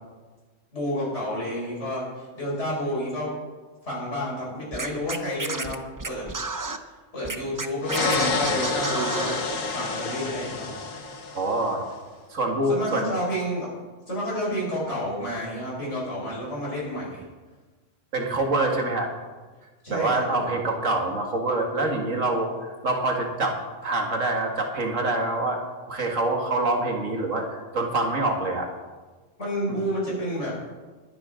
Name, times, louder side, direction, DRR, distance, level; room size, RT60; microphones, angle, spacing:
voice 1, 0.7-3.3 3.8-6.3 7.1-9.4 9.7-10.7 12.7-13.7 14.1-17.2 19.8-20.5 29.4-30.6, equal, 65° left, -6 dB, 5.5 m, -30 dB
Scratching (performance technique), 4.7-6.8 7.2-9.4, right 3 dB, 25° right, 0.4 m, -31 dB
sound 1, 7.8-11.7, left 4 dB, 90° left, 1.7 m, -28 dB
voice 2, 11.3-11.8 12.3-13.1 18.1-19.1 19.9-23.6 23.8-25.6 25.9-28.7 29.7-29.8, right 2 dB, 80° right, 2 dB, 2.3 m, -25 dB
21.5 x 10.0 x 3.8 m, 1.3 s
omnidirectional pair, 1.3 m